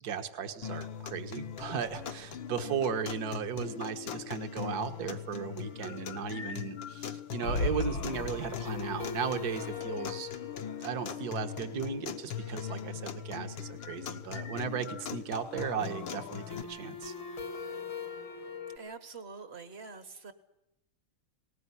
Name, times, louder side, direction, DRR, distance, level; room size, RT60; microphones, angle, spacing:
voice 1, 0.0-10.3 10.8-17.1, right 6 dB, 50° right, 7 dB, 1.8 m, -36 dB
sound 1, 0.6-16.6, left 8 dB, 65° left, 1.8 m, -40 dB
sound 2, 1.6-2.8 3.1-3.2 3.5-3.6 7.4-13.1 15.8-18.8, left 4 dB, 85° left, 3.6 m, -40 dB
voice 2, 18.7-20.3, right 4 dB, 35° right, 10 dB, 1.5 m, -45 dB
19.5 x 19.0 x 9.8 m, 0.82 s
omnidirectional pair, 2.3 m